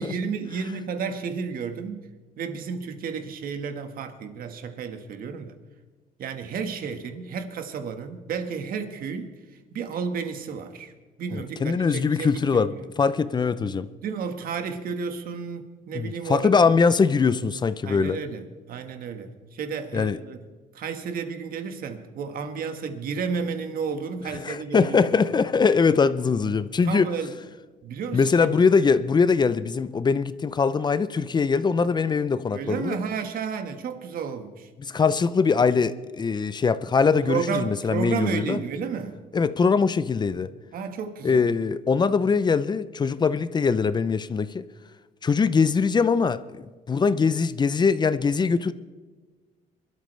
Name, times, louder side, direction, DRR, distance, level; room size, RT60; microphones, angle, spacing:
voice 1, 0.0-2.0 2.4-5.5 6.2-9.3 9.7-10.9 11.2-12.8 14.0-16.5 17.8-20.4 20.7-25.0 26.8-27.3 27.8-28.6 28.9-29.0 32.5-34.7 37.2-39.2 40.7-41.4, right 6 dB, 60° right, 1.6 m, -32 dB
voice 2, 11.3-13.9 15.9-18.2 19.9-20.2 24.4-27.1 28.1-33.0 34.8-38.6 39.3-40.5 41.2-44.6 45.2-48.7, left 5 dB, 25° left, 0.6 m, -22 dB
24.5 x 13.0 x 3.3 m
cardioid pair, 110°, 17 cm